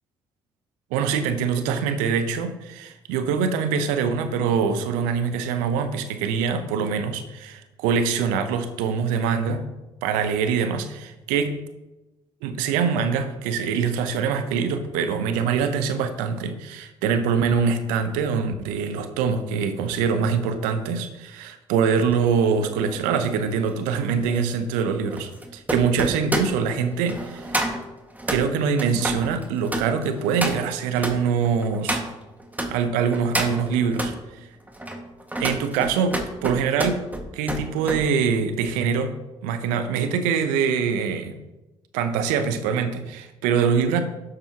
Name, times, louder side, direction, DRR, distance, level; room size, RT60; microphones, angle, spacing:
voice 1, 0.9-9.7 10.0-11.6 12.4-27.7 28.3-32.0 32.7-34.1 35.4-37.0 37.3-39.1 39.4-41.4 41.9-44.0, right 6 dB, 75° right, 9 dB, 0.8 m, -24 dB
sound 1, 22.1-32.7 33.1-34.2 34.7-38.0 38.4-38.7, right 1 dB, 10° right, 1.8 m, -30 dB
11.5 x 7.8 x 3.0 m, 1.0 s
hypercardioid pair, 45°, 14 cm